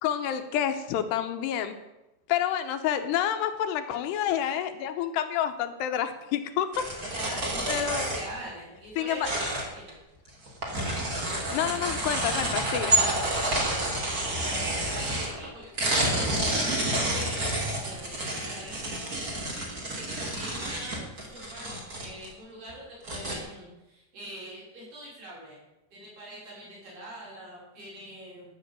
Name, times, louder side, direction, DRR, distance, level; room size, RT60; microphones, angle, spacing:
voice 1, 0.0-1.8 2.3-7.1 7.7-8.0 9.0-9.3 11.5-13.0, left 10 dB, 80° left, 8 dB, 2.9 m, -29 dB
sound 1, 6.7-8.4 9.2-9.9 10.3-15.5 15.8-22.3 22.7-22.8 23.0-23.4, right 1 dB, 25° right, 2.2 m, -29 dB
voice 2, 7.0-9.3 9.7-9.9 11.1-11.5 13.2-14.0 14.3-19.5 19.9-21.7 22.0-25.6 25.9-28.5, right 1 dB, 50° right, -5 dB, 7.2 m, -43 dB
13.0 x 7.0 x 8.9 m, 0.97 s
omnidirectional pair, 5.1 m